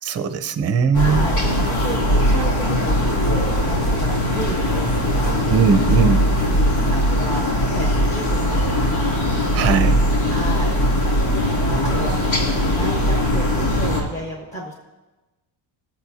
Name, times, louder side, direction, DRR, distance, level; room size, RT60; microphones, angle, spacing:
voice 1, 0.0-1.3 5.5-6.2 9.5-10.1, right 6 dB, 30° right, 8 dB, 0.7 m, -19 dB
sound 1, 0.9-14.0, equal, 70° left, 3.1 m, -20 dB
voice 2, 0.9-5.4 6.3-9.2 10.3-14.7, equal, 15° left, -4 dB, 1.3 m, -33 dB
20.5 x 8.2 x 2.8 m, 1.1 s
cardioid pair, 145°, 48 cm